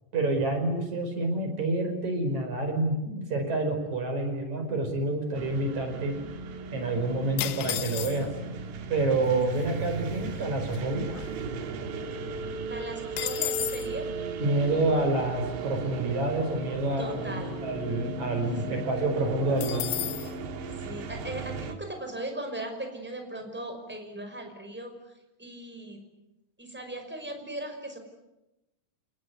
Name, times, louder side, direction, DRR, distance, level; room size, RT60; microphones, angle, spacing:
voice 1, 0.1-6.1 6.7-8.3 8.9-11.1 14.4-19.9, right 2 dB, 40° right, 5 dB, 6.1 m, -28 dB
sound 1, 5.3-21.7, right 4 dB, 75° right, 4.2 m, -36 dB
sound 2, 7.4-8.5 9.3-9.4 9.6-9.9 10.3-11.8 12.1-12.2 12.5-13.9 19.6-20.3, left 14 dB, 80° left, 3.3 m, -33 dB
voice 2, 12.7-14.1 17.0-17.5 18.7-18.9 20.8-25.1 25.4-26.0 26.6-28.0, right 1 dB, ahead, 4 dB, 5.3 m, -38 dB
29.0 x 20.5 x 9.7 m, 0.95 s
omnidirectional pair, 5.0 m